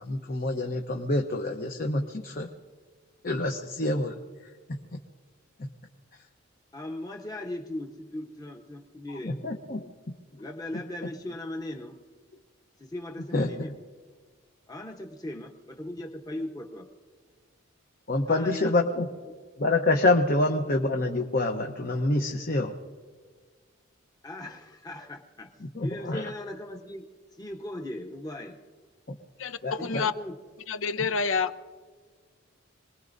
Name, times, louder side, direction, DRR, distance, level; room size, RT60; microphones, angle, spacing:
voice 1, 0.1-2.5 3.2-4.2 9.2-9.9 13.3-13.7 18.1-19.1 19.6-22.7 25.6-26.3 29.6-30.1 31.0-31.1, left 2 dB, 45° left, 0.9 m, -27 dB
voice 2, 6.7-9.7 10.4-12.0 12.8-13.7 14.7-16.9 18.3-18.8 19.3-19.4 24.2-25.5 25.8-27.0 27.4-28.6 29.8-30.3, left 1 dB, 20° left, 1.0 m, -38 dB
voice 3, 29.4-30.1 30.7-31.5, left 5 dB, 70° left, 0.7 m, -28 dB
27.0 x 20.5 x 2.7 m
head